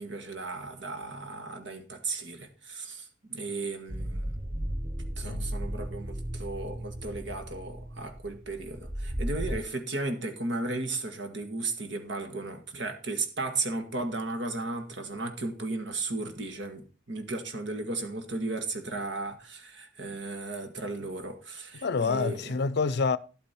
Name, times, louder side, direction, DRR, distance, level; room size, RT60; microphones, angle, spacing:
voice 1, 0.0-4.4 5.2-22.5, right 2 dB, 65° right, 1.8 m, -35 dB
sound 1, 3.9-9.6, right 1 dB, 15° right, 0.5 m, -35 dB
voice 2, 21.8-23.2, left 4 dB, 55° left, 0.5 m, -27 dB
11.5 x 8.6 x 4.4 m
head